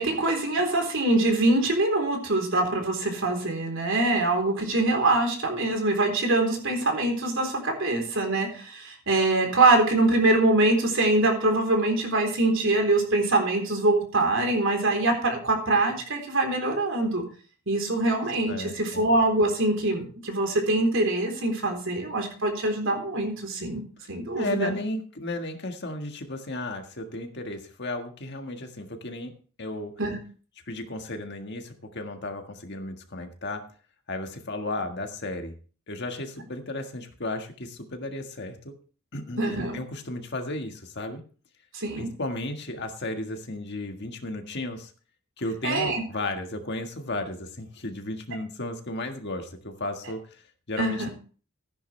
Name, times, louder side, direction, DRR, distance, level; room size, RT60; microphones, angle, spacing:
voice 1, 0.0-17.2 17.7-23.8 24.1-24.7 30.0-30.2 39.4-39.8 41.7-42.1 45.6-46.0 50.8-51.1, right 2 dB, 60° right, 3 dB, 3.8 m, -24 dB
voice 2, 18.5-19.0 24.4-29.3 29.6-29.9 30.7-33.6 34.1-35.5 35.9-38.7 39.1-41.2 42.0-44.9 45.4-51.1, left 2 dB, 50° left, 5 dB, 1.7 m, -34 dB
15.0 x 10.5 x 3.3 m, 0.40 s
head